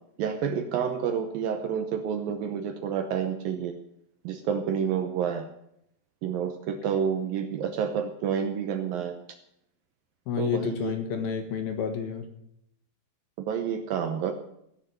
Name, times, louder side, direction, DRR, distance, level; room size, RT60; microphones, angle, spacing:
voice 1, 0.2-3.8 4.2-5.5 6.2-9.2 10.4-10.9 13.4-14.3, right 7 dB, 75° right, 6 dB, 2.3 m, -29 dB
voice 2, 10.3-12.3, left 7 dB, 65° left, 6 dB, 3.1 m, -30 dB
16.5 x 6.3 x 9.2 m, 0.76 s
omnidirectional pair, 4.9 m